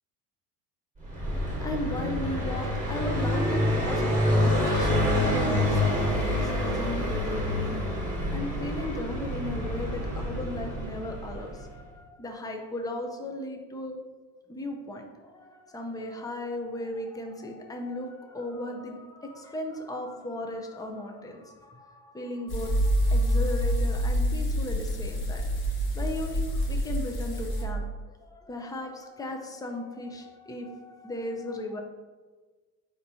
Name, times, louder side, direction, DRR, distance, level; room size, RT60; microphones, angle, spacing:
Car passing by, 1.0-11.6, left 1 dB, 15° right, 1.3 m, -27 dB
voice 1, 1.6-14.0 14.5-25.4 25.9-28.0 28.3-31.8, left 1 dB, 10° left, 2 dB, 0.5 m, -36 dB
sound 1, 22.5-27.6, equal, 50° left, 1.3 m, -27 dB
4.1 x 2.9 x 4.1 m, 1.4 s
supercardioid pair, 85°, 49 cm